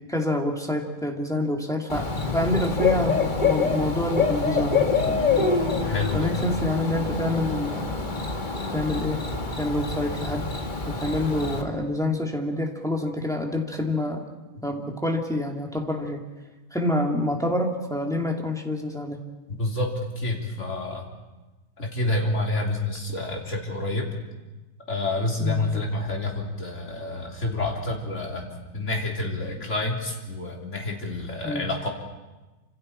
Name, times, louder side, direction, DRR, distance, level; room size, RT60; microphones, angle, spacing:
voice 1, 0.1-5.2 6.1-7.9 8.7-9.3 9.6-10.5 10.9-14.2 14.6-16.3 16.7-19.2 25.4-25.8 31.4-31.7, left 1 dB, ahead, 0 dB, 2.3 m, -27 dB
Bird / Cricket, 1.9-11.6, left 4 dB, 30° left, 2.0 m, -26 dB
voice 2, 5.8-6.3 19.6-21.0 21.8-24.1 24.9-28.5 28.7-31.9, left 2 dB, 50° left, -1 dB, 3.8 m, -28 dB
28.5 x 26.5 x 4.4 m, 1.1 s
omnidirectional pair, 1.7 m